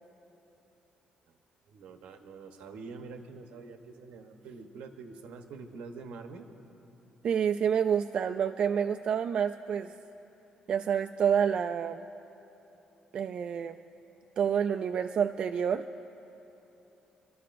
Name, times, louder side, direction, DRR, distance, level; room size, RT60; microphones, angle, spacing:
voice 1, 1.7-6.5, right 4 dB, 85° right, 6 dB, 0.9 m, -46 dB
voice 2, 7.2-9.9 10.7-12.1 13.1-13.8 14.4-16.0, right 8 dB, 55° right, 7 dB, 0.3 m, -28 dB
28.0 x 12.5 x 2.5 m, 3.0 s
cardioid pair, 105°, 2 cm